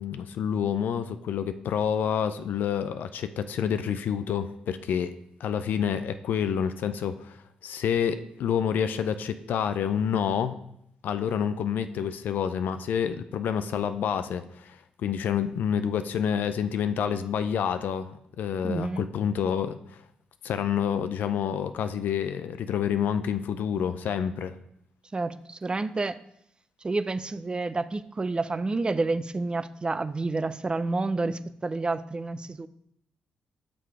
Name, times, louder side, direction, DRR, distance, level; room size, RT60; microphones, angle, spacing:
voice 1, 0.0-7.4 7.6-10.6 11.0-20.0 20.4-24.5, left 8 dB, 75° left, 11 dB, 0.4 m, -28 dB
voice 2, 18.6-19.0 25.1-26.2 26.8-32.7, right 3 dB, 30° right, 13 dB, 0.5 m, -29 dB
5.8 x 4.9 x 4.7 m, 0.76 s
supercardioid pair, 50°, 3 cm